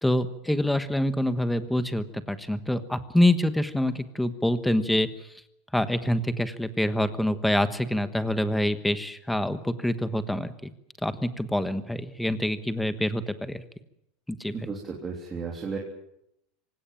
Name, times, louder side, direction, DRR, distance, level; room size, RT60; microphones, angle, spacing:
voice 1, 0.0-5.1 5.7-10.7 11.0-13.6 14.4-14.5, left 1 dB, 5° left, 11 dB, 1.3 m, -26 dB
voice 2, 14.5-15.8, right 5 dB, 15° right, -1 dB, 3.3 m, -34 dB
26.0 x 17.0 x 8.9 m, 0.81 s
supercardioid pair, 165°, 0 cm